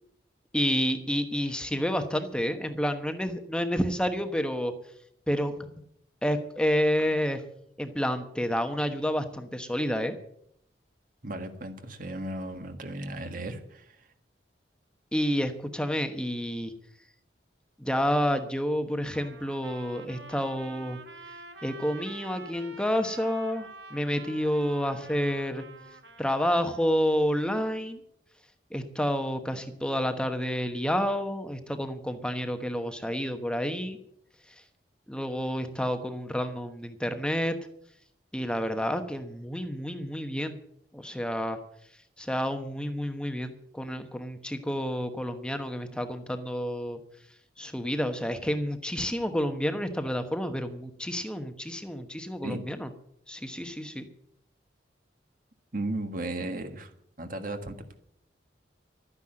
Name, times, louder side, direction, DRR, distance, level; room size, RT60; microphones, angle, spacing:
voice 1, 0.5-4.7 5.3-5.7 6.2-7.4 7.8-10.2 15.1-16.7 17.8-21.0 21.6-25.6 26.2-28.0 28.7-34.0 35.1-37.6 38.3-40.6 40.9-41.6 42.2-47.0 47.6-52.9 53.3-54.1, equal, 5° left, 7 dB, 1.1 m, -29 dB
voice 2, 11.2-14.0 52.4-52.6 55.7-56.9 57.2-57.9, right 2 dB, 50° right, 7 dB, 1.7 m, -35 dB
Trumpet, 19.1-26.9, right 3 dB, 65° right, 1.5 m, -47 dB
12.5 x 9.8 x 7.6 m, 0.71 s
head